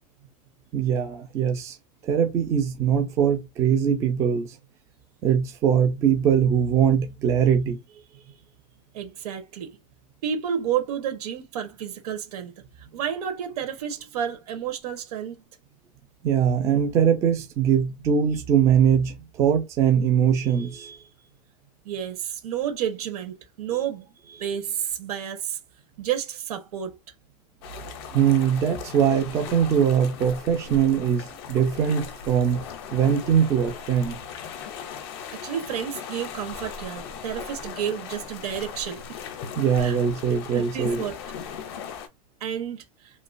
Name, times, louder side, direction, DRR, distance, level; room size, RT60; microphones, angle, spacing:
voice 1, 0.7-1.7 2.1-4.5 5.2-7.8 16.2-21.0 28.1-32.6 32.9-34.2 39.6-41.0, right 8 dB, 15° right, 0.4 m, -22 dB
voice 2, 8.9-9.7 10.2-12.5 12.9-15.4 21.8-24.1 24.4-25.6 26.0-27.0 35.4-39.2 39.8-40.0 40.5-41.2 42.4-42.8, right 9 dB, 90° right, 1.2 m, -30 dB
sound 1, 27.6-42.1, left 7 dB, 40° left, 0.5 m, -38 dB
2.9 x 2.3 x 2.5 m
supercardioid pair, 175°, 19 cm